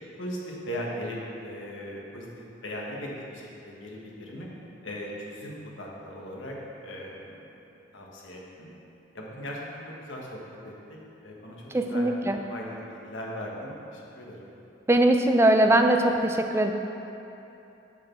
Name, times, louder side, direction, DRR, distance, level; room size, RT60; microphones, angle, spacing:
voice 1, 0.2-2.3 2.6-4.5 4.8-6.5 6.8-7.5 7.9-8.7 9.1-11.0 11.2-12.1 12.5-14.5, equal, 80° left, -3 dB, 1.4 m, -38 dB
voice 2, 11.7-12.4 14.9-16.7, right 1 dB, 15° right, 5 dB, 0.4 m, -21 dB
6.6 x 6.1 x 5.8 m, 2.9 s
head